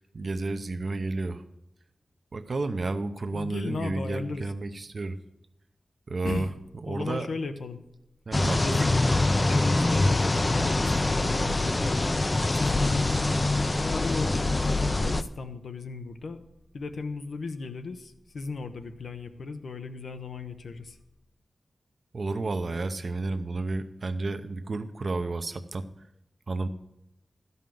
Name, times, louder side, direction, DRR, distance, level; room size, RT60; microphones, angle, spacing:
voice 1, 0.0-1.4 2.3-5.2 6.1-6.5 6.9-7.3 8.3-8.9 22.1-25.9 26.5-26.7, right 3 dB, 55° right, 9 dB, 0.7 m, -31 dB
voice 2, 3.3-4.5 6.2-6.5 6.8-7.8 8.6-9.0 9.5-12.0 12.5-13.1 13.8-16.4 16.7-21.0, left 3 dB, 85° left, 8 dB, 0.7 m, -35 dB
sound 1, 8.3-15.2, left 2 dB, 30° left, 0.4 m, -24 dB
12.5 x 5.5 x 7.6 m, 0.89 s
wide cardioid pair, 105°, 0 cm